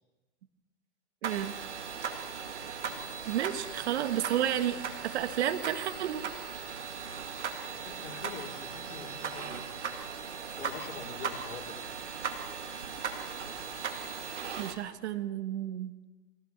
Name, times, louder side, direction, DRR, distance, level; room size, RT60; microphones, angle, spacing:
voice 1, 1.2-1.6 3.3-4.8 5.0-6.2 14.6-15.9, right 11 dB, 70° right, 10 dB, 1.8 m, -31 dB
sound 1, 1.2-14.7, right 6 dB, 90° right, 2.3 m, -38 dB
voice 2, 7.7-9.6 10.6-11.9, left 7 dB, 75° left, 2 dB, 3.3 m, -45 dB
23.0 x 17.0 x 6.8 m, 1.2 s
hypercardioid pair, 110°, 34 cm